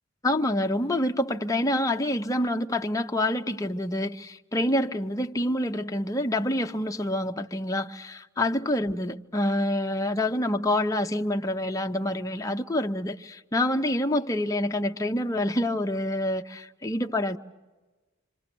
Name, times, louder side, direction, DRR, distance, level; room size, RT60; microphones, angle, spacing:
voice 1, 0.2-17.4, left 1 dB, 15° left, 0.7 m, -27 dB
27.0 x 26.5 x 6.1 m
head